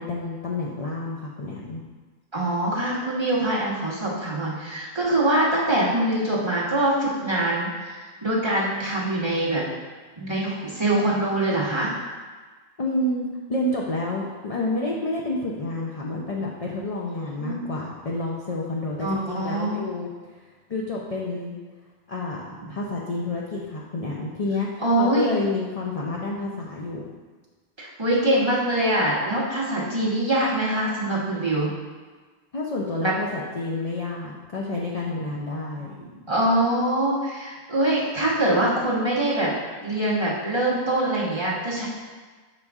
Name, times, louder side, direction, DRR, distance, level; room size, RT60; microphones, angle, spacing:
voice 1, 0.0-1.8 12.8-20.1 20.7-21.6 22.1-22.4 22.7-27.0 32.5-35.9, left 2 dB, 45° left, -3 dB, 0.4 m, -29 dB
voice 2, 2.3-9.6 10.2-11.9 17.2-17.6 19.0-19.8 22.6-22.7 24.8-25.3 27.8-31.7 33.0-33.1 36.3-39.5 39.8-41.9, right 1 dB, 20° right, -6 dB, 1.2 m, -24 dB
6.7 x 5.0 x 3.5 m, 1.4 s
omnidirectional pair, 1.4 m